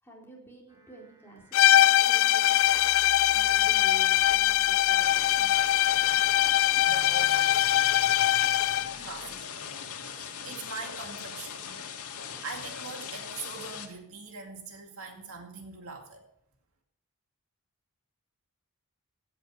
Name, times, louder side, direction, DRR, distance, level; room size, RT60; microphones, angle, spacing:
voice 1, 0.0-2.8 3.3-5.6, right 3 dB, 10° left, -3 dB, 4.1 m, -49 dB
sound 1, 0.7-9.4, right 2 dB, 15° right, 1.0 m, -52 dB
sound 2, 1.5-8.9, left 13 dB, 65° left, 0.4 m, -22 dB
sound 3, 5.0-13.9, left 7 dB, 90° left, 1.9 m, -40 dB
voice 2, 6.8-7.7 9.0-9.8 10.1-11.7 12.2-16.2, right 4 dB, 65° right, 3 dB, 2.3 m, -42 dB
16.5 x 9.7 x 5.0 m, 0.70 s
head